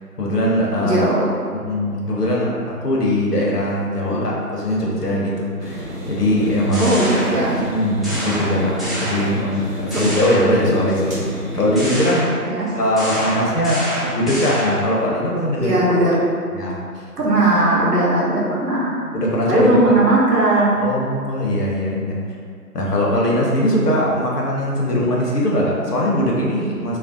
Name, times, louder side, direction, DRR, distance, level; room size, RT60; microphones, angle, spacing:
voice 1, 0.2-1.1 1.5-6.9 7.6-12.2 12.7-15.8 16.5-16.8 19.1-19.8 20.8-22.2 22.7-27.0, equal, 80° left, -3 dB, 0.7 m, -21 dB
voice 2, 0.8-1.3 4.1-4.2 6.8-7.5 12.4-12.7 15.6-16.2 17.2-18.9 19.5-20.8 24.9-25.0, right 1 dB, 90° right, -6 dB, 0.9 m, -18 dB
sound 1, 5.6-11.8, equal, 60° right, 0.7 m, -30 dB
sound 2, 6.4-7.7 8.0-9.6 9.9-10.9 11.7-14.9, equal, ahead, 0.4 m, -28 dB
2.4 x 2.0 x 2.5 m, 2.2 s
figure-of-eight pair, 165°, 47 cm